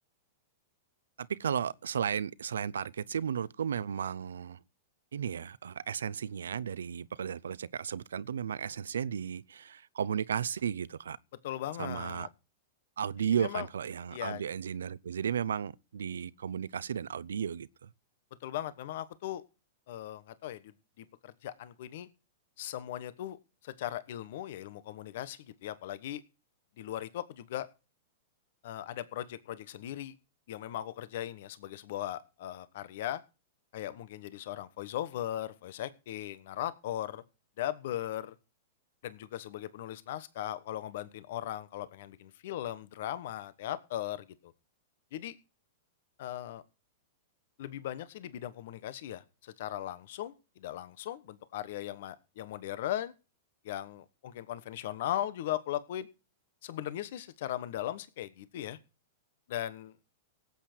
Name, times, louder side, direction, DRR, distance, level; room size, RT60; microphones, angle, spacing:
voice 1, 1.2-4.6 5.1-11.2 11.8-12.3 13.0-17.9, right 8 dB, 80° right, 0.6 m, -34 dB
voice 2, 11.4-12.3 13.4-13.7 14.1-14.4 18.4-19.4 19.9-20.6 21.0-22.1 22.6-23.4 23.6-26.2 26.8-27.7 28.6-30.1 30.5-33.2 33.7-37.2 37.6-38.3 39.0-44.5 45.1-45.4 46.2-46.6 47.6-53.1 53.6-56.1 56.6-58.8 59.5-59.9, left 12 dB, 65° left, 1.2 m, -38 dB
18.0 x 8.3 x 4.5 m
hypercardioid pair, 115°, 0 cm